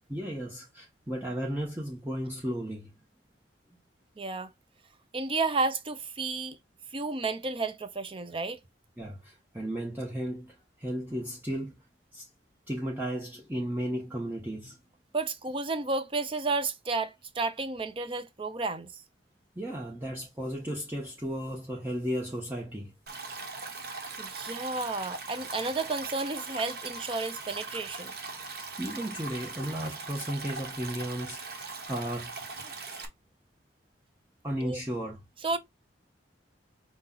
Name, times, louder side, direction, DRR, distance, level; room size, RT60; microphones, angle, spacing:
voice 1, 0.1-2.9 6.4-6.5 9.0-11.7 12.1-12.3 12.7-14.8 19.6-22.9 28.8-32.4 32.6-32.7 34.4-35.2, equal, 10° right, 0.9 m, -34 dB
voice 2, 4.2-4.5 5.1-6.6 6.9-8.6 15.1-18.9 24.2-28.1 34.6-34.8 35.4-35.6, right 3 dB, 30° right, 0.5 m, -32 dB
Stream, 23.1-33.1, right 4 dB, 55° right, 1.0 m, -40 dB
5.7 x 2.3 x 3.8 m
head